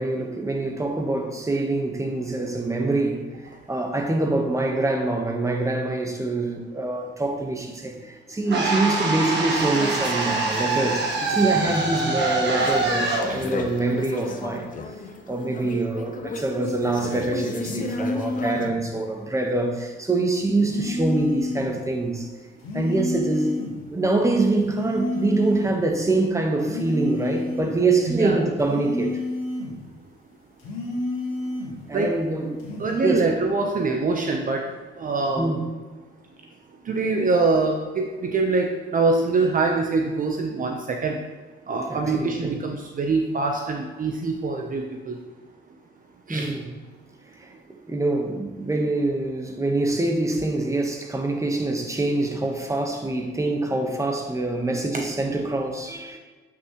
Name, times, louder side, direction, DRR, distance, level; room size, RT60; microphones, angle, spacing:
voice 1, 0.0-3.3 3.7-14.7 15.3-22.3 22.7-29.2 31.9-32.6 33.0-33.3 35.4-35.7 41.9-42.5 46.3-46.7 47.4-47.5 47.9-56.2, right 2 dB, 15° right, 2 dB, 1.2 m, -25 dB
sound 1, 8.5-14.6, right 3 dB, 60° right, 1.6 m, -25 dB
sound 2, 9.5-18.7, left 4 dB, 40° left, 0.8 m, -35 dB
sound 3, 17.6-18.8 20.6-21.8 22.6-23.8 24.6-25.8 26.6-27.8 28.6-29.8 30.6-31.8 32.6-32.9, left 2 dB, 90° left, 2.0 m, -30 dB
voice 2, 28.1-28.4 31.9-32.1 32.8-34.6 35.0-35.6 36.9-41.2 41.7-45.2 46.3-46.5, right 3 dB, 45° right, 2 dB, 0.9 m, -24 dB
8.1 x 5.8 x 3.1 m, 1.3 s
cardioid pair, 90°, 20 cm